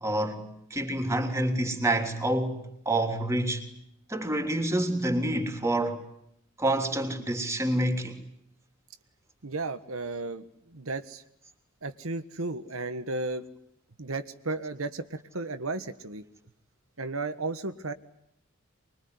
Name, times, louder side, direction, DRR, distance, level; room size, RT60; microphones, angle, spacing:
voice 1, 0.0-3.6 4.1-6.0 6.6-8.2, right 1 dB, 15° right, 3.3 m, -28 dB
voice 2, 9.4-11.2 11.8-13.5 14.0-16.2 17.0-17.9, right 3 dB, 85° right, 1.5 m, -34 dB
24.5 x 22.5 x 9.6 m
head